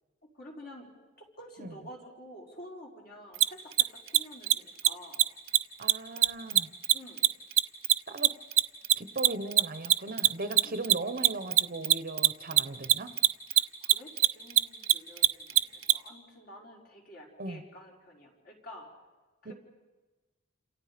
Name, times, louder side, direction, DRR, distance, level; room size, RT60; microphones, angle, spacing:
voice 1, 0.2-0.9 1.2-5.2 6.9-7.2 10.6-10.8 13.5-18.9 19.4-19.5, equal, 50° left, -1 dB, 5.0 m, -49 dB
Mechanisms, 3.3-3.4 3.7-3.8 4.1-4.2 4.4-4.5 4.8-4.9 5.1-5.2 5.5-5.6 5.9-8.6 8.8-15.9, right 15 dB, 70° right, 0.7 m, -21 dB
voice 2, 5.8-6.7 8.1-8.3 9.0-13.1 17.4-17.6 19.4-19.5, right 2 dB, 45° right, 11 dB, 1.1 m, -38 dB
29.0 x 27.5 x 5.2 m, 1.2 s
head